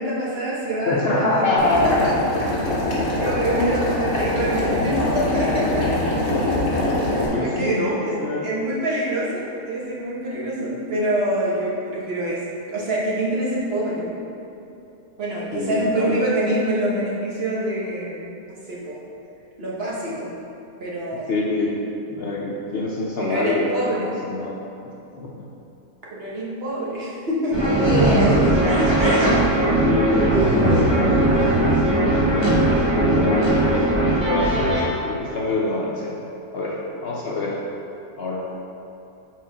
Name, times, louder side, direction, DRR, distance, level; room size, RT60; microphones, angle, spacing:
voice 1, 0.0-1.5 1.8-2.1 2.9-5.9 7.4-8.2 8.4-12.4 12.7-14.1 15.2-18.3 18.7-19.0 19.6-20.3 20.8-21.3 23.2-24.1 26.1-27.6 28.0-28.2, right 1 dB, 45° right, -6 dB, 1.2 m, -26 dB
voice 2, 0.8-2.1 3.6-3.7 6.0-7.0 7.3-8.5 15.5-16.2 21.1-21.7 22.1-24.6 25.2-25.4 28.1-28.7 29.8-32.1 33.0-34.4 35.0-36.2 36.5-37.6 38.2-38.5, left 2 dB, 65° left, -4 dB, 0.6 m, -25 dB
Boiling, 1.6-7.3, left 1 dB, 45° left, 1.4 m, -23 dB
sound 1, 27.5-34.8, right 1 dB, 20° right, 1.2 m, -18 dB
4.6 x 4.1 x 5.0 m, 2.8 s
omnidirectional pair, 1.7 m